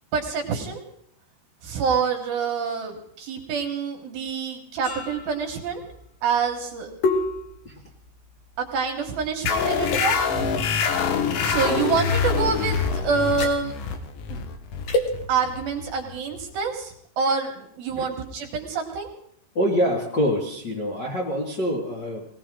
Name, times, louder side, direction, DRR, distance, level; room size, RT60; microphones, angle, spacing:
voice 1, 0.1-0.8 1.6-5.8 6.2-6.9 8.6-10.7 11.4-13.7 14.3-14.4 15.3-19.1, right 5 dB, 65° right, 2 dB, 3.1 m, -27 dB
sound 1, 4.8-9.3 9.8-10.0 11.7-12.0 13.2-13.6 14.8-15.1, left 2 dB, 60° left, 2.6 m, -29 dB
sound 2, 9.5-16.6, left 6 dB, 80° left, 3.5 m, -25 dB
voice 2, 19.5-22.3, equal, 40° left, -4 dB, 1.7 m, -25 dB
19.5 x 17.5 x 3.8 m, 0.68 s
omnidirectional pair, 5.2 m